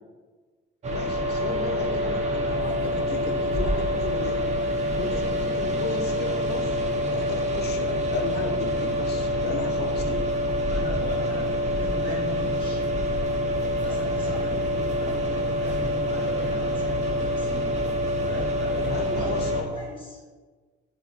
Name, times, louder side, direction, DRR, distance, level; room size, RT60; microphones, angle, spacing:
sound 1, 0.8-19.6, equal, 35° right, 0.5 m, -26 dB
voice 1, 0.9-4.5 4.7-10.3 18.8-19.7, left 4 dB, 55° left, 5 dB, 0.4 m, -35 dB
sound 2, 2.4-19.2, left 1 dB, 15° right, 1.1 m, -44 dB
voice 2, 10.7-12.9 13.8-17.7 18.2-18.8 19.1-20.2, left 1 dB, 25° left, -5 dB, 1.2 m, -39 dB
3.4 x 2.6 x 2.3 m, 1.4 s
cardioid pair, 90°, 20 cm